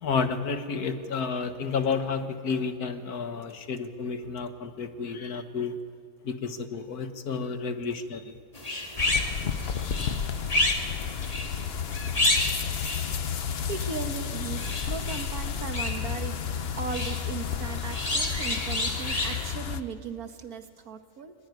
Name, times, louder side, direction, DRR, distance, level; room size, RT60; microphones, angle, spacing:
voice 1, 0.0-5.8 6.3-8.3, left 5 dB, 80° left, 8 dB, 1.9 m, -31 dB
sound 1, 8.5-19.5, left 2 dB, 25° left, 1.9 m, -31 dB
sound 2, 9.0-19.8, left 7 dB, 50° left, 0.9 m, -32 dB
voice 2, 13.7-16.5 16.8-21.3, right 6 dB, 75° right, 8 dB, 1.8 m, -37 dB
22.0 x 20.5 x 9.5 m, 2.2 s
omnidirectional pair, 1.6 m